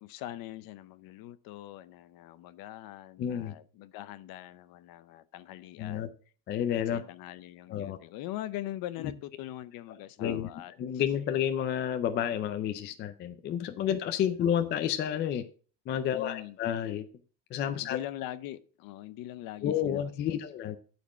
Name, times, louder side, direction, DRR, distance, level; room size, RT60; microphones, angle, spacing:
voice 1, 0.0-6.1 6.9-10.7 16.1-16.6 17.8-20.5, left 14 dB, 45° left, 0.7 m, -42 dB
voice 2, 3.2-3.5 5.8-6.1 6.5-7.0 7.7-8.0 10.2-10.5 10.8-15.5 15.9-17.1 17.5-18.0 19.6-20.8, left 9 dB, 25° left, 0.3 m, -30 dB
11.5 x 4.4 x 5.9 m
cardioid pair, 155°, 49 cm